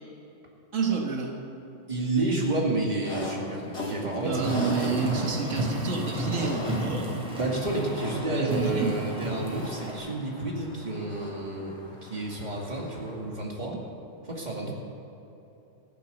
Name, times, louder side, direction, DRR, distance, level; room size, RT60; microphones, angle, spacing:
voice 1, 0.7-1.4 4.2-7.2 8.3-8.9, right 5 dB, 90° right, 1 dB, 1.7 m, -29 dB
voice 2, 1.9-4.9 7.4-13.7 14.2-14.7, right 2 dB, 35° right, -2 dB, 2.4 m, -30 dB
sound 1, 3.0-13.3, left 1 dB, 60° left, 2.6 m, -39 dB
Car, 4.3-10.0, equal, 5° right, 3.8 m, -32 dB
15.0 x 10.0 x 6.9 m, 3.0 s
omnidirectional pair, 1.3 m